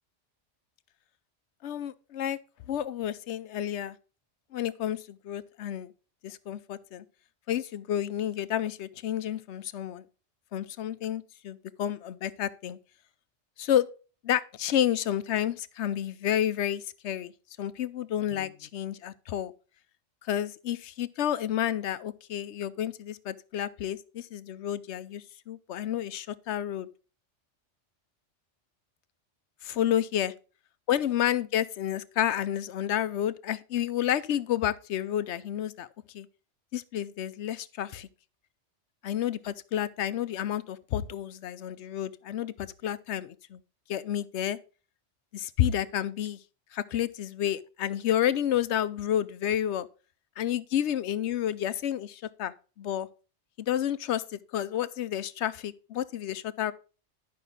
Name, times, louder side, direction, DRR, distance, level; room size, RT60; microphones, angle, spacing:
voice 1, 1.6-2.4 2.7-4.0 4.5-5.9 6.2-7.0 7.5-10.0 10.5-12.8 13.6-13.9 14.2-17.3 17.6-19.5 20.3-26.9 29.6-30.3 30.9-35.9 36.1-36.3 36.7-38.1 39.0-43.6 43.9-44.6 45.3-46.4 46.7-49.9 50.4-53.1 53.6-56.7, left 11 dB, 75° left, 0.9 m, -30 dB
11.0 x 5.8 x 3.7 m
omnidirectional pair, 1.2 m